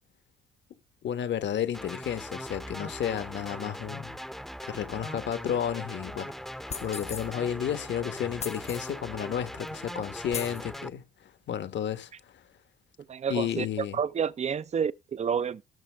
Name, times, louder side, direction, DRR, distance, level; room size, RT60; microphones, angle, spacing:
voice 1, 1.0-4.2 4.6-12.1 13.3-14.0, left 9 dB, 65° left, 1.3 m, -32 dB
sound 1, 1.7-10.9, equal, ahead, 0.8 m, -40 dB
sound 2, 6.7-7.3 8.4-8.9 9.7-9.8 10.3-10.6, left 6 dB, 30° left, 0.6 m, -38 dB
voice 2, 13.1-13.7 13.9-15.6, right 7 dB, 35° right, 0.6 m, -29 dB
17.5 x 6.5 x 3.4 m
cardioid pair, 90°, 20 cm